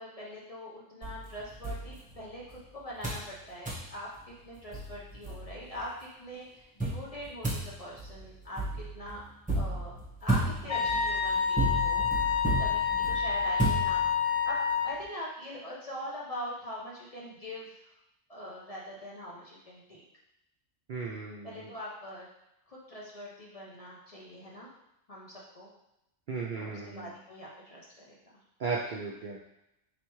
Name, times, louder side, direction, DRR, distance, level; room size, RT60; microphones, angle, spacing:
voice 1, 0.0-9.2 9.5-14.0 14.4-14.6 14.8-17.8 18.3-20.0 21.4-22.3 22.7-24.7 25.1-25.7 26.6-28.3, equal, 35° left, -5 dB, 0.7 m, -42 dB
sound 1, 1.0-2.6 3.0-3.3 3.6-3.9 4.4-4.5 4.7-5.8 6.8-14.4, right 1 dB, 5° right, 1.2 m, -33 dB
Wind instrument woodwind instrument, 10.7-15.0, left 7 dB, 65° left, 0.7 m, -28 dB
voice 2, 20.9-21.7 26.3-27.1 28.6-29.4, right 4 dB, 60° right, -2 dB, 0.5 m, -35 dB
4.2 x 3.3 x 3.0 m, 0.85 s
omnidirectional pair, 1.3 m